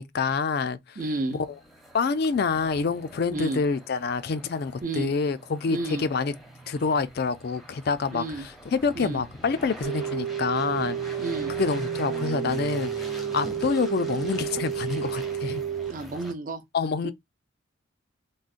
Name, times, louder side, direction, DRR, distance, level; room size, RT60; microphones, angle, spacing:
voice 1, 0.0-0.8 1.3-1.5 1.9-6.3 6.7-8.2 8.7-11.0 11.6-15.6 16.7-17.1, left 5 dB, 50° left, 0.3 m, -27 dB
sound 1, 1.0-16.3, equal, ahead, 0.6 m, -43 dB
voice 2, 1.0-1.4 3.3-3.6 4.8-5.1 5.7-6.1 8.1-8.5 8.9-9.2 11.2-11.6 15.9-16.6, right 2 dB, 40° right, 0.6 m, -31 dB
sound 2, 9.8-15.9, right 9 dB, 85° right, 0.4 m, -31 dB
3.7 x 2.1 x 2.4 m
head